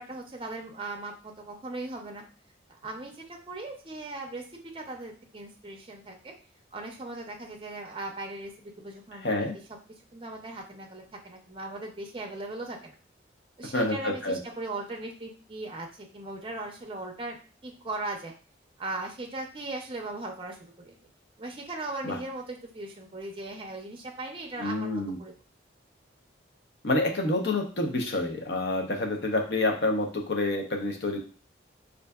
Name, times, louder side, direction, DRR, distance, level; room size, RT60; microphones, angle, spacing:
voice 1, 0.0-2.2 2.8-4.5 4.7-6.3 6.7-9.3 9.7-9.8 10.1-13.0 13.6-18.3 18.8-21.0 21.4-25.3, right 2 dB, 25° right, 1 dB, 0.5 m, -38 dB
voice 2, 13.7-14.4 22.0-22.2 24.6-25.2 26.8-31.2, left 2 dB, 65° left, 3 dB, 0.6 m, -28 dB
4.4 x 2.5 x 2.2 m, 0.39 s
head